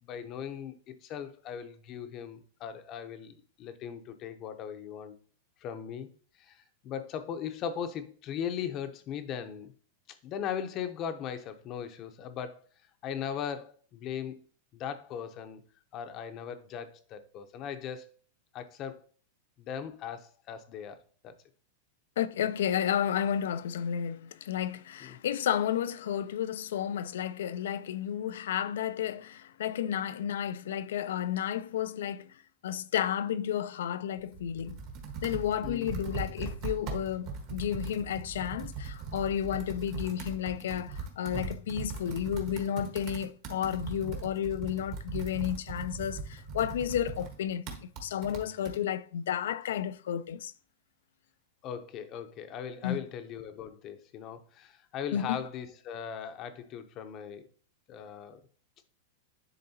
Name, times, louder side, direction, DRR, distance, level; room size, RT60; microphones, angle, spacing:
voice 1, 0.0-5.1 5.6-6.1 6.4-9.7 10.1-12.6 13.0-14.4 14.7-15.6 15.9-18.1 18.5-19.0 19.6-21.3 25.0-25.2 35.6-35.9 51.6-57.5 57.9-58.4, left 8 dB, 30° left, 0.7 m, -39 dB
voice 2, 22.2-32.3 32.6-34.8 35.2-50.5 52.8-53.0 55.1-55.4, left 9 dB, 80° left, 0.4 m, -32 dB
Computer keyboard, 34.2-48.8, right 4 dB, 40° right, 1.4 m, -40 dB
10.5 x 3.7 x 2.8 m
supercardioid pair, 160°, 0 cm